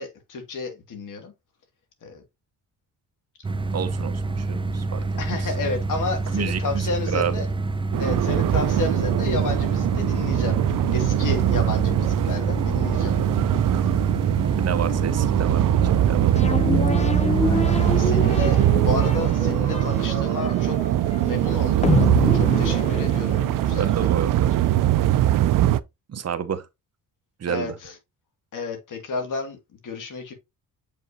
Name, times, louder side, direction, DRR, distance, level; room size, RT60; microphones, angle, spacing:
voice 1, 0.0-1.3 2.0-2.2 5.2-7.5 8.0-10.6 10.9-13.2 17.4-20.8 21.2-21.9 22.3-24.1 27.5-27.9 28.5-30.3, left 4 dB, 65° left, 2.3 m, -31 dB
sound 1, 3.4-18.1, right 3 dB, 15° right, 0.4 m, -27 dB
voice 2, 3.7-5.1 5.4-5.5 6.3-7.3 14.4-16.6 23.8-24.5 26.1-26.7 27.4-27.7, right 8 dB, 50° right, 1.0 m, -29 dB
sound 2, 7.9-25.8, right 13 dB, 70° right, 0.5 m, -22 dB
sound 3, 16.4-23.8, left 4 dB, 20° left, 0.7 m, -27 dB
7.6 x 5.4 x 2.8 m
cardioid pair, 105°, 34 cm